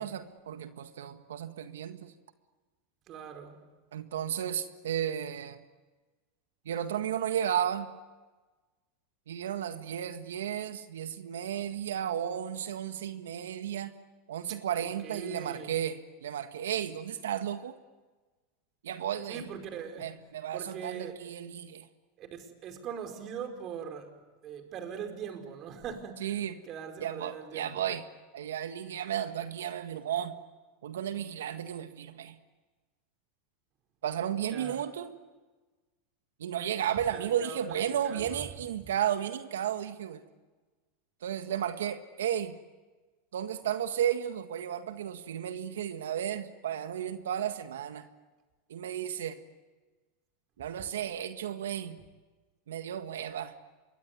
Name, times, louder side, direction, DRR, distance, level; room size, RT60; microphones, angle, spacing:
voice 1, 0.0-2.1 3.9-5.6 6.7-7.9 9.3-13.9 14.3-17.8 18.8-19.4 20.0-21.9 26.2-26.6 27.0-28.0 28.3-30.3 30.8-32.4 34.0-35.1 36.4-40.2 41.2-42.5 43.3-48.1 48.7-49.4 50.6-52.0 52.7-53.5, right 10 dB, 85° right, 9 dB, 1.7 m, -33 dB
voice 2, 3.1-3.6 14.5-14.6 15.0-15.7 19.3-20.1 20.5-21.2 22.2-24.1 24.4-27.8 34.5-34.8 37.1-37.8 38.0-38.5 38.8-38.9, right 7 dB, 45° right, 6 dB, 4.9 m, -41 dB
27.0 x 23.0 x 9.6 m, 1.3 s
hypercardioid pair, 110°, 0 cm